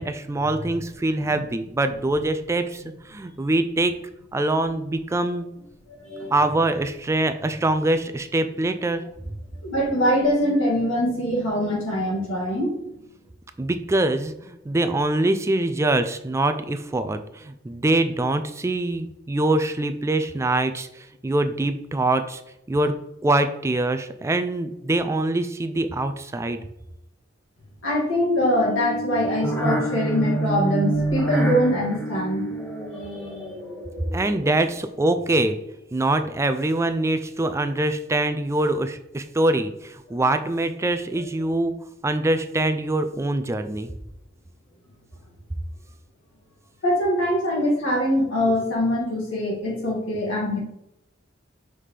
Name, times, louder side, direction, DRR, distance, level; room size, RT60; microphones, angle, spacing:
voice 1, 0.0-3.9 4.3-5.5 6.3-9.0 13.6-22.4 22.7-22.9 23.2-26.6 34.1-35.6 35.9-41.7 42.0-43.9, right 2 dB, 15° right, 9 dB, 0.3 m, -24 dB
voice 2, 6.0-6.5 9.6-12.8 27.8-32.5 33.0-33.3 40.1-40.2 46.8-50.6, equal, 80° left, -3 dB, 2.1 m, -23 dB
sound 1, 28.4-34.8, right 2 dB, 10° left, 1.0 m, -28 dB
5.7 x 5.0 x 3.3 m, 0.84 s
head